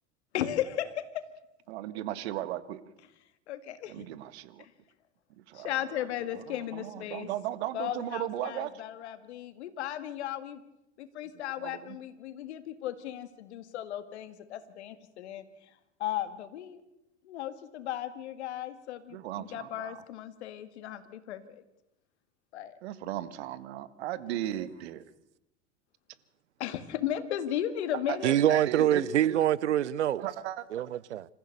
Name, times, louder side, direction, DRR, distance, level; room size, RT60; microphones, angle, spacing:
voice 1, 0.3-1.2 3.5-4.0 4.6-4.7 5.5-7.3 7.7-10.6 11.0-15.4 16.0-16.8 17.2-21.6 22.5-22.8 24.3-24.6 26.6-29.1, left 11 dB, 75° left, 2.1 m, -36 dB
voice 2, 1.7-2.8 3.9-4.6 5.5-5.7 6.7-8.7 11.6-12.0 19.1-20.0 22.8-25.0 28.1-28.3 28.7-29.0 30.2-30.7, right 13 dB, 70° right, 1.6 m, -36 dB
voice 3, 28.2-30.2 30.7-31.3, right 11 dB, 85° right, 0.7 m, -25 dB
27.0 x 15.0 x 6.7 m
hypercardioid pair, 90°, 34 cm